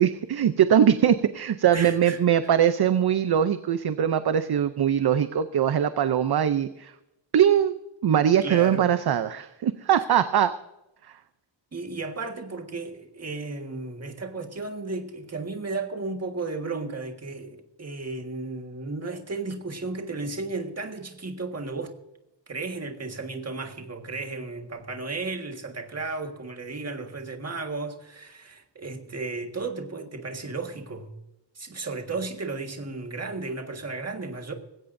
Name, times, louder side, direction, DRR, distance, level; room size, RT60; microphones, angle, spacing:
voice 1, 0.0-6.9 7.3-7.8 8.0-10.5, right 9 dB, 55° right, 11 dB, 0.6 m, -21 dB
voice 2, 1.7-2.2 8.4-8.9 11.7-21.9 22.5-31.1 31.5-34.5, right 3 dB, 35° right, 4 dB, 1.7 m, -34 dB
20.0 x 16.5 x 2.6 m, 0.91 s
wide cardioid pair, 175°, 45 cm